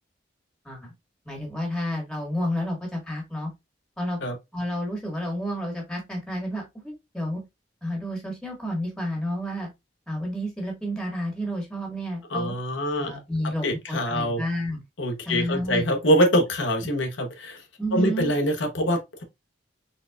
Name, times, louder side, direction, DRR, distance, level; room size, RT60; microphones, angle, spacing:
voice 1, 1.2-3.5 4.0-4.2 4.5-7.4 7.8-9.7 10.1-12.5 13.0-14.8 15.2-15.8 17.8-18.3, equal, 5° left, 1.5 m, -30 dB
voice 2, 12.3-13.1 13.6-14.4 15.0-17.6 17.9-19.2, equal, 80° left, 0.9 m, -24 dB
4.2 x 3.8 x 2.3 m
head